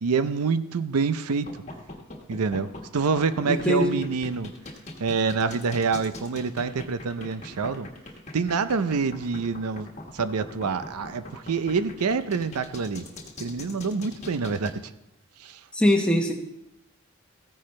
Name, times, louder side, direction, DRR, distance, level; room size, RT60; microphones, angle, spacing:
voice 1, 0.0-1.5 2.3-4.5 5.0-7.9 8.3-9.9 10.1-13.0 13.4-14.7 15.4-15.6, right 5 dB, 90° right, 12 dB, 0.5 m, -26 dB
sound 1, 1.3-14.7, left 2 dB, 30° left, 1.4 m, -41 dB
voice 2, 3.5-4.0 15.7-16.3, left 1 dB, 5° left, 2 dB, 1.0 m, -21 dB
14.5 x 10.0 x 3.2 m, 0.87 s
head